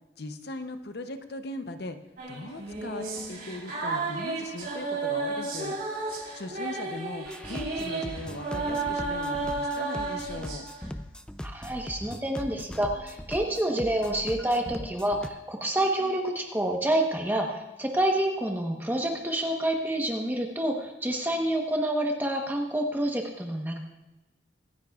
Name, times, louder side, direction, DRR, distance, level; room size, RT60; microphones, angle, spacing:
voice 1, 0.2-2.0 2.3-5.8 6.3-10.7, left 2 dB, 55° left, 9 dB, 0.8 m, -39 dB
sound 1, 2.2-10.9, right 3 dB, 50° right, 3.6 m, -33 dB
sound 2, 7.2-15.3, equal, 5° left, 0.4 m, -40 dB
voice 2, 11.4-23.8, right 1 dB, 10° right, 1 dB, 1.0 m, -28 dB
25.0 x 9.9 x 2.4 m, 1.0 s
head